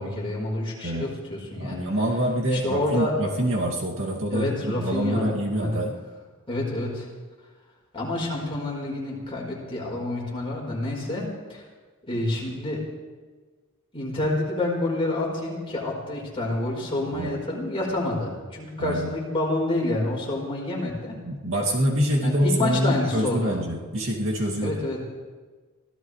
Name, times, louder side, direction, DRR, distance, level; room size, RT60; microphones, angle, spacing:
voice 1, 0.0-1.9 2.5-3.1 4.3-5.8 6.5-7.1 7.9-11.6 12.1-12.8 13.9-21.1 22.2-23.6 24.6-25.0, left 2 dB, 25° left, -3 dB, 4.5 m, -28 dB
voice 2, 0.8-1.1 1.6-5.9 17.1-17.3 18.8-19.1 21.1-24.8, equal, 60° right, -2 dB, 2.5 m, -26 dB
25.0 x 16.5 x 3.3 m, 1.4 s
head